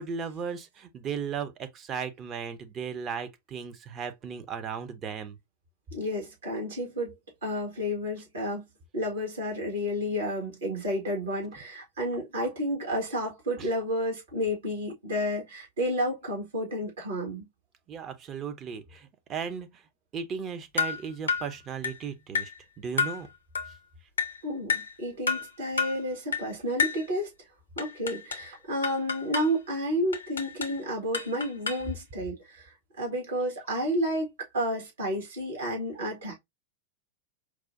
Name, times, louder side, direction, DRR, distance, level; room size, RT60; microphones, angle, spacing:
voice 1, 0.0-5.4 13.6-13.7 17.9-19.8 20.1-22.5 22.8-23.3, right 6 dB, 30° right, 0.6 m, -36 dB
voice 2, 5.9-7.1 7.4-8.6 8.9-17.4 24.4-27.3 27.8-36.3, equal, 65° right, 1.5 m, -31 dB
sound 1, 20.8-21.0 21.3-21.5 21.8-22.0 22.3-22.6 23.0-23.2 23.5-23.7 24.2-24.4 24.7-24.9 25.3-25.5 25.8-26.0 26.3-26.5 26.8-27.1 27.8-28.5 28.8-29.5 30.1-30.8 31.1-31.9, left 6 dB, 70° left, 0.6 m, -30 dB
4.7 x 2.2 x 2.5 m
figure-of-eight pair, 90°, 0 cm